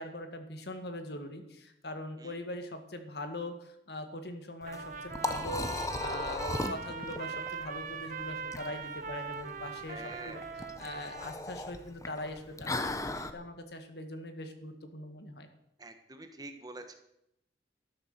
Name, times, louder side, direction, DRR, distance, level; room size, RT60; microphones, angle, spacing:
voice 1, 0.0-10.4 10.8-15.5, left 1 dB, 65° left, 7 dB, 1.9 m, -42 dB
Liquid, 4.6-13.3, left 2 dB, 20° left, 0.9 m, -38 dB
Trumpet, 4.7-11.4, right 5 dB, 45° right, 1.2 m, -41 dB
voice 2, 9.8-10.5 15.8-16.9, right 2 dB, 20° right, 7 dB, 1.3 m, -46 dB
13.0 x 11.5 x 6.7 m, 0.80 s
head